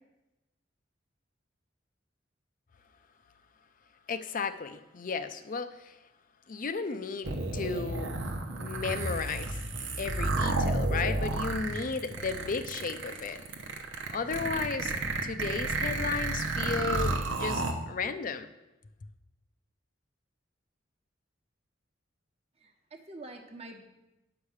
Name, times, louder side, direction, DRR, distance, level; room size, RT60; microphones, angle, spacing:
voice 1, 4.1-6.0 6.5-8.1 8.6-9.6 10.0-13.4 14.1-18.5, left 5 dB, 45° left, 10 dB, 0.5 m, -34 dB
sound 1, 7.2-17.7, right 2 dB, 90° right, 1.0 m, -31 dB
voice 2, 22.6-23.8, right 2 dB, 30° right, 3 dB, 1.1 m, -46 dB
9.3 x 4.9 x 7.2 m, 0.97 s
head